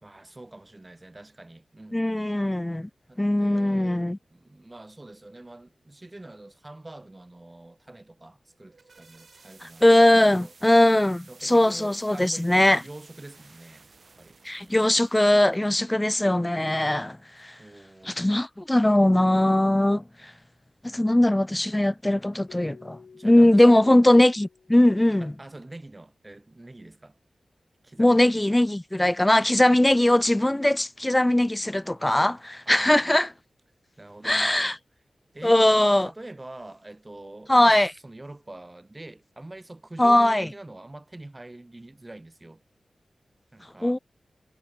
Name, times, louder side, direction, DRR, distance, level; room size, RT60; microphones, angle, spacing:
voice 1, 0.0-2.3 3.1-10.5 11.3-12.5 12.8-13.9 14.2-14.4 17.6-18.2 23.1-24.0 25.2-27.2 27.8-28.4 32.6-33.1 34.0-34.8 35.3-35.6 36.0-42.6 43.5-44.0, right 2 dB, 25° right, 1.7 m, -45 dB
voice 2, 1.9-2.9 3.2-4.2 9.8-12.8 14.4-17.5 18.0-20.0 20.8-25.3 28.0-33.3 34.2-34.8 35.4-36.1 37.5-37.9 40.0-40.5 43.8-44.0, left 1 dB, 15° left, 0.3 m, -20 dB
sound 1, 8.5-15.8, right 4 dB, 55° right, 2.2 m, -54 dB
Keyboard (musical), 22.5-25.3, left 5 dB, 75° left, 2.3 m, -52 dB
wide cardioid pair, 70°, 0 cm